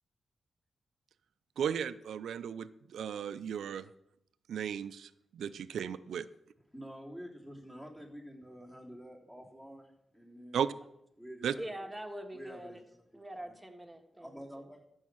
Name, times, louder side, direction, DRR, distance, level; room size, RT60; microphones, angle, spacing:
voice 1, 1.6-3.9 4.5-6.3 10.5-10.7 11.4-11.5, right 8 dB, 90° right, 14 dB, 0.5 m, -35 dB
voice 2, 6.7-10.7 11.2-11.9 12.3-12.8 13.5-13.6 14.1-14.8, equal, 10° left, -2 dB, 3.5 m, -48 dB
voice 3, 11.6-12.8 13.1-14.4, right 1 dB, 5° right, 3 dB, 1.9 m, -43 dB
13.5 x 6.4 x 6.3 m, 0.79 s
cardioid pair, 75°, 0 cm